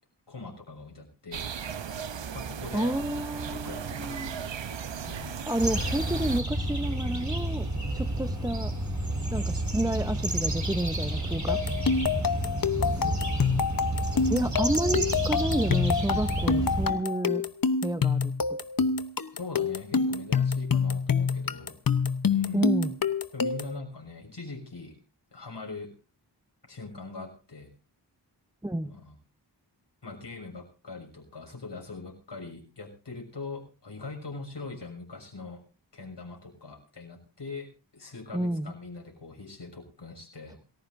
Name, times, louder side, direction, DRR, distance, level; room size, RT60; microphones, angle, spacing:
voice 1, 0.3-1.5 1.9-2.0 2.3-2.9 3.5-4.4 5.0-5.4 12.8-13.5 14.1-14.3 19.4-21.8 22.3-22.8 23.3-25.0 25.3-25.9 26.7-27.7 28.8-29.1 30.0-35.6 35.9-37.7 37.9-40.6, left 3 dB, 75° left, 2 dB, 6.5 m, -42 dB
sound 1, 1.3-6.4, right 7 dB, 85° right, 0.9 m, -36 dB
voice 2, 2.7-4.5 5.5-7.7 7.9-8.7 9.3-11.6 14.3-17.4 17.8-18.3 22.5-23.0 28.6-28.9 38.3-38.7, right 1 dB, 10° right, 10 dB, 0.8 m, -30 dB
sound 2, 5.6-16.9, right 1 dB, 40° right, 3.8 m, -30 dB
sound 3, 11.5-23.8, left 5 dB, 50° left, 1.0 m, -27 dB
28.5 x 14.5 x 2.6 m, 0.33 s
cardioid pair, 45°, 43 cm